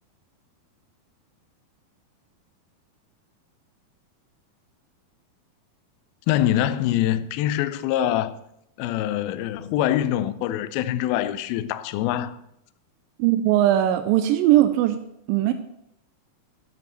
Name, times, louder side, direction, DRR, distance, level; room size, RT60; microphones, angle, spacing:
voice 1, 6.3-8.4 8.8-12.4, left 12 dB, 80° left, 2.3 m, -24 dB
voice 2, 13.2-15.0 15.3-15.5, right 13 dB, 85° right, 2.0 m, -19 dB
10.5 x 8.6 x 4.4 m
omnidirectional pair, 4.5 m